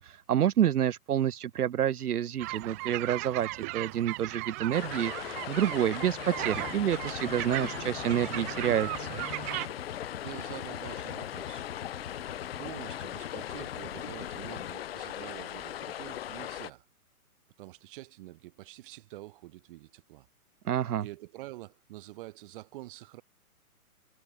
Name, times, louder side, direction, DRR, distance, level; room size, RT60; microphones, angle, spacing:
voice 1, 0.0-9.2 20.6-21.1, right 10 dB, 80° right, 0.8 m, -28 dB
sound 1, 2.4-9.7, right 24 dB, 10° right, 0.6 m, -37 dB
sound 2, 4.7-16.7, left 12 dB, 40° left, 1.0 m, -39 dB
sound 3, 6.4-14.7, left 7 dB, 80° left, 2.2 m, -45 dB
voice 2, 10.2-11.7 12.1-16.8 17.6-20.3 21.0-23.2, right 17 dB, 35° right, 3.3 m, -46 dB
hypercardioid pair, 150°, 45 cm